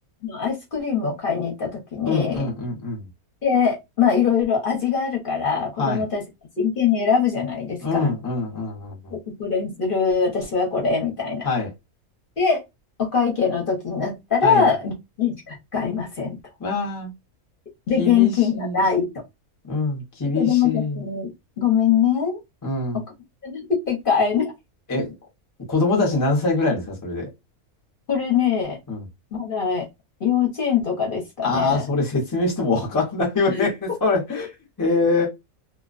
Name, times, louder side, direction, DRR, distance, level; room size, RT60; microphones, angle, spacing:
voice 1, 0.2-2.5 3.4-6.2 6.6-8.1 9.1-11.5 12.4-12.6 13.0-14.9 15.2-16.4 17.9-19.1 20.4-21.3 21.6-22.4 22.9-23.0 23.4-24.5 28.1-28.8 29.3-29.9 30.2-31.8 33.5-33.7, left 6 dB, 45° left, 0.8 m, -22 dB
voice 2, 2.1-3.1 5.8-6.0 7.8-9.2 11.4-11.7 14.4-14.7 16.6-17.1 18.0-18.9 19.7-21.0 22.6-23.0 24.9-25.1 25.7-27.3 28.9-29.0 31.4-34.5 34.8-35.3, left 3 dB, 25° left, 0.4 m, -24 dB
2.3 x 2.2 x 2.4 m
omnidirectional pair, 1.5 m